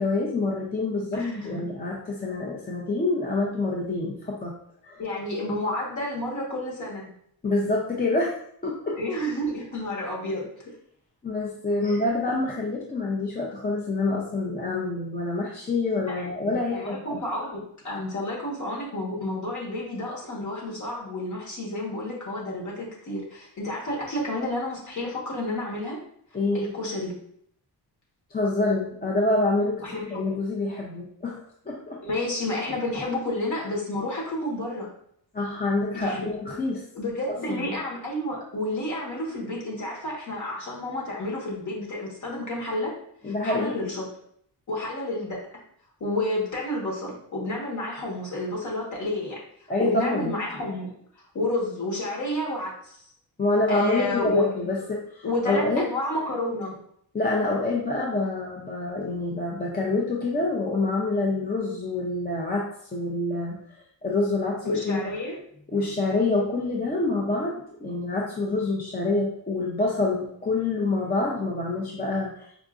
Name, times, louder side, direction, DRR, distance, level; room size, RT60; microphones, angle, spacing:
voice 1, 0.0-4.5 4.8-5.1 7.4-9.0 11.2-17.2 26.3-26.7 28.3-31.4 31.7-32.0 35.3-36.8 37.3-37.7 43.2-43.9 49.7-50.3 53.4-55.8 57.1-63.6 64.0-65.0 65.7-72.5, left 2 dB, 25° left, -2 dB, 0.5 m, -27 dB
voice 2, 1.1-1.6 5.0-7.1 9.0-10.5 11.8-12.0 16.1-26.0 26.5-27.1 29.8-30.3 32.0-34.9 35.9-36.2 36.9-42.9 43.2-44.0 44.7-45.4 46.0-49.4 49.8-50.9 51.3-53.0 53.7-54.5 55.2-56.8 64.6-65.4, left 1 dB, 45° left, -3 dB, 1.3 m, -30 dB
4.7 x 2.5 x 2.4 m, 0.66 s
cardioid pair, 120°, 40 cm